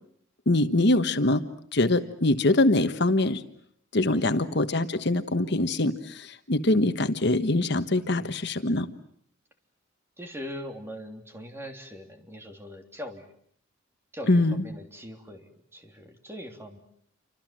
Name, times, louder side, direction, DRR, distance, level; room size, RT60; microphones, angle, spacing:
voice 1, 0.5-1.4 1.7-3.4 3.9-8.9 14.3-14.6, left 2 dB, 55° left, 9 dB, 1.3 m, -23 dB
voice 2, 4.1-4.4 8.0-8.3 10.2-13.3 14.1-16.8, equal, 10° right, 4 dB, 3.2 m, -41 dB
28.5 x 25.5 x 7.6 m, 0.66 s
head